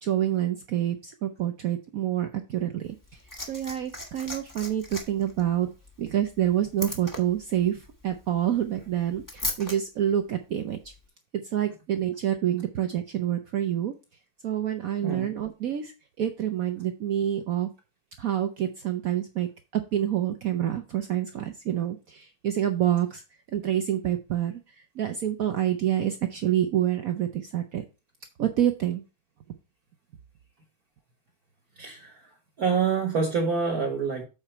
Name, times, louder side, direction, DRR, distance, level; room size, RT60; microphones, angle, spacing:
voice 1, 0.0-3.0 3.5-5.7 6.0-10.8 11.3-13.9 14.4-15.9 16.2-17.7 18.2-23.2 23.5-24.6 25.0-27.8 28.4-29.0, right 11 dB, 75° right, 0.8 m, -27 dB
Liquid, 2.8-9.8 10.8-11.0, left 1 dB, 10° left, 1.0 m, -38 dB
voice 2, 31.8-32.1 32.6-34.2, right 5 dB, 50° right, 1.5 m, -26 dB
7.9 x 4.5 x 4.3 m
omnidirectional pair, 2.3 m